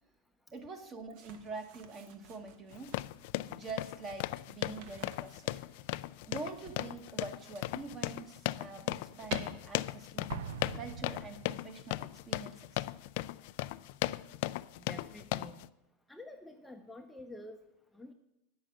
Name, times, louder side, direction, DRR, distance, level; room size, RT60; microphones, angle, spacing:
voice 1, 0.5-3.0 3.5-5.6 6.2-10.3 10.7-12.8, right 3 dB, 30° right, 7 dB, 1.2 m, -45 dB
sound 1, 1.1-3.1 4.5-5.9 6.6-7.9 8.3-9.4, right 7 dB, 60° right, 1.1 m, -50 dB
sound 2, 2.7-15.7, left 18 dB, 60° left, 0.3 m, -37 dB
Explosion, 10.3-12.0, right 6 dB, 80° right, 0.6 m, -43 dB
voice 2, 14.9-15.6 16.1-17.6 17.9-18.1, left 1 dB, 5° left, 3 dB, 0.6 m, -48 dB
9.3 x 6.3 x 7.5 m, 0.90 s
supercardioid pair, 130°, 0 cm